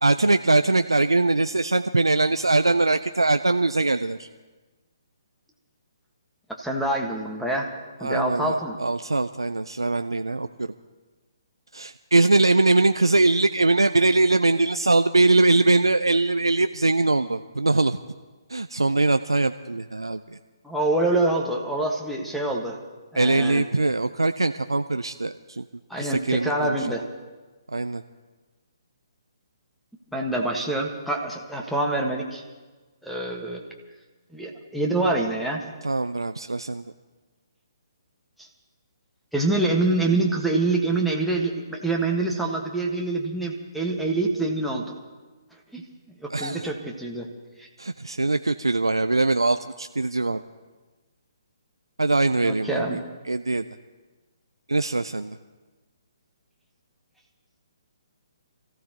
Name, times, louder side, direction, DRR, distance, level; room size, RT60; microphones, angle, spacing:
voice 1, 0.0-4.3 8.0-10.7 11.7-18.0 18.5-20.4 23.2-25.6 26.0-26.9 27.7-28.0 35.8-36.8 46.3-46.7 47.8-50.4 52.0-53.0 53.3-53.7 54.7-55.4, right 2 dB, 90° right, 10 dB, 0.4 m, -22 dB
voice 2, 6.6-7.7 8.0-8.8 20.6-22.8 23.1-23.6 25.9-27.0 30.1-32.4 33.0-33.6 34.3-35.6 38.4-38.5 39.3-44.9 45.7-45.8 46.2-47.3 47.6-47.7 52.4-53.0, right 2 dB, ahead, 0 dB, 1.5 m, -26 dB
28.0 x 15.0 x 3.0 m, 1.3 s
figure-of-eight pair, 135°, 2 cm